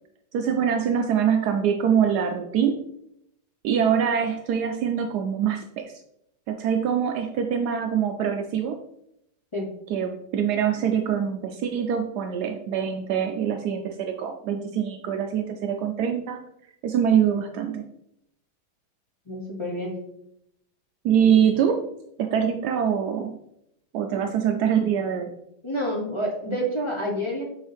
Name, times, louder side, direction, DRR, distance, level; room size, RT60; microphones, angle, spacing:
voice 1, 0.3-2.8 3.6-5.9 6.5-8.8 9.9-16.4 16.8-17.8 21.0-21.9 22.2-23.4 23.9-25.3, right 8 dB, 80° right, 5 dB, 0.9 m, -24 dB
voice 2, 19.3-20.0 25.6-27.4, equal, 35° left, -3 dB, 0.4 m, -28 dB
8.0 x 4.6 x 3.4 m, 0.77 s
omnidirectional pair, 2.3 m